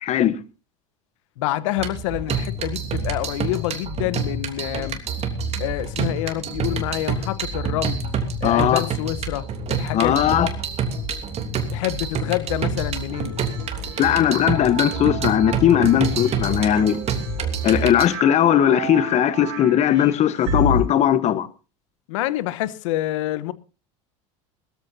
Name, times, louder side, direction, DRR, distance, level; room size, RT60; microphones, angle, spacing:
voice 1, 0.0-0.4 8.4-8.8 9.9-10.5 14.0-17.0 17.6-21.5, left 10 dB, 45° left, 1.2 m, -18 dB
voice 2, 1.4-5.0 5.6-8.0 8.4-10.4 11.7-13.4 22.1-23.5, left 15 dB, 75° left, 1.1 m, -27 dB
sound 1, 1.8-18.1, right 4 dB, 40° right, 3.1 m, -27 dB
sound 2, 13.1-20.8, equal, 75° right, 4.7 m, -32 dB
21.0 x 14.0 x 2.8 m
hypercardioid pair, 90°, 16 cm